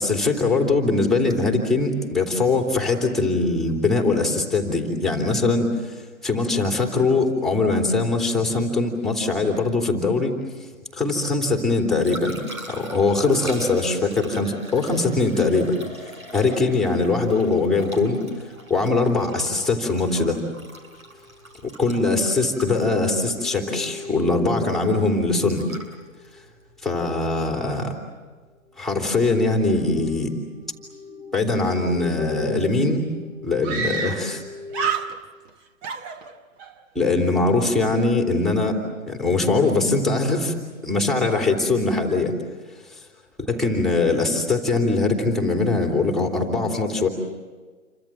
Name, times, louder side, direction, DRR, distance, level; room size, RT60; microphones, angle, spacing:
voice 1, 0.0-5.9 6.2-10.4 10.9-12.4 12.7-15.7 16.3-18.2 18.7-20.4 21.8-25.7 26.8-27.9 28.8-30.3 31.3-33.0 33.4-34.4 36.9-38.8 39.1-40.5 40.8-42.4 43.5-47.1, left 3 dB, ahead, 2 dB, 2.9 m, -21 dB
Liquid, 11.6-27.7 30.5-30.7, equal, 85° right, 7.6 m, -39 dB
sound 1, 21.2-21.4 22.3-26.7 28.9-34.9, left 2 dB, 55° right, 3.6 m, -38 dB
Screaming, 32.5-32.6 32.8-32.9 33.6-34.4 34.7-35.5 35.8-36.7, right 6 dB, 20° right, 1.1 m, -28 dB
29.0 x 24.5 x 7.3 m, 1.4 s
hypercardioid pair, 135°, 41 cm